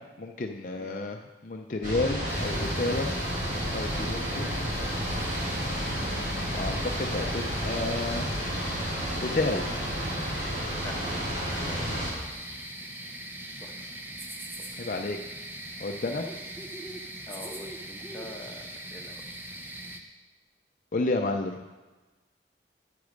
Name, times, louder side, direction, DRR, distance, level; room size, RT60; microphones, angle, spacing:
voice 1, 0.0-3.1 3.7-4.5 5.9-8.3 9.2-9.6 14.8-15.2 15.8-16.3 20.9-21.6, left 2 dB, 45° left, 3 dB, 0.5 m, -31 dB
sound 1, 1.8-12.1, equal, 45° right, 3.1 m, -31 dB
sound 2, 2.3-20.0, right 1 dB, 10° right, 0.7 m, -41 dB
voice 2, 4.7-5.6 10.6-11.0 11.6-12.3 13.6-13.9 17.3-19.2, left 1 dB, 15° left, 0 dB, 1.1 m, -45 dB
9.4 x 8.3 x 5.1 m, 1.2 s
head